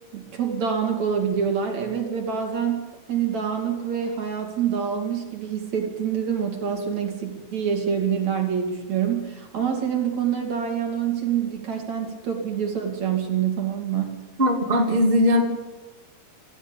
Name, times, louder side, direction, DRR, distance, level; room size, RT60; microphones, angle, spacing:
voice 1, 0.1-14.2, right 7 dB, 40° right, 2 dB, 3.1 m, -26 dB
voice 2, 14.4-15.4, left 1 dB, 25° right, 2 dB, 1.1 m, -19 dB
25.5 x 14.0 x 9.0 m, 1.2 s
omnidirectional pair, 6.0 m